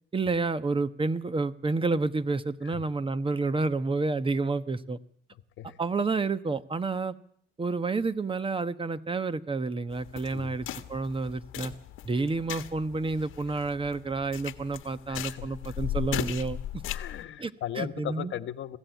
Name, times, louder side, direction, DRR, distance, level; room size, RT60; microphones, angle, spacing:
voice 1, 0.1-5.0 5.8-7.1 7.6-11.7 12.0-16.6 17.4-18.3, right 3 dB, 25° right, 12 dB, 1.1 m, -29 dB
sound 1, 9.9-17.2, left 12 dB, 90° left, 1.4 m, -37 dB
voice 2, 15.1-15.5 16.9-18.8, left 11 dB, 75° left, 11 dB, 1.2 m, -37 dB
22.0 x 15.5 x 9.3 m, 0.66 s
cardioid pair, 90°, 20 cm